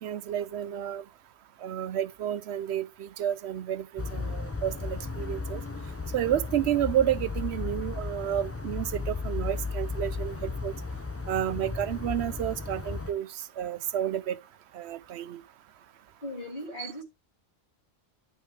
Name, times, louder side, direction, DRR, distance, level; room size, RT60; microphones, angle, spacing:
voice 1, 0.0-1.0 1.6-5.6 6.1-10.7 11.3-13.3 13.6-14.4 14.7-15.4 16.8-16.9, right 10 dB, 80° right, 0.9 m, -30 dB
sound 1, 4.0-13.1, left 4 dB, 20° left, 0.4 m, -35 dB
voice 2, 16.2-17.0, left 1 dB, 45° left, 2.7 m, -38 dB
10.5 x 5.5 x 3.2 m
omnidirectional pair, 1.1 m